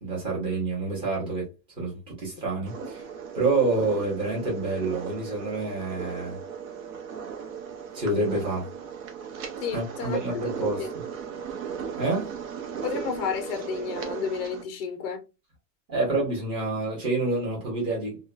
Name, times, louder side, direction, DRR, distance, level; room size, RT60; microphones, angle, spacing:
voice 1, 0.0-1.5 1.8-3.0 3.3-6.4 7.9-8.7 9.7-11.0 12.0-12.3 15.9-18.2, right 3 dB, 10° right, 0.7 m, -28 dB
sound 1, 2.7-14.6, right 7 dB, 55° right, 0.7 m, -37 dB
voice 2, 9.6-10.9 12.8-15.2, left 6 dB, 40° left, 0.4 m, -32 dB
2.8 x 2.2 x 2.3 m
supercardioid pair, 170°, 49 cm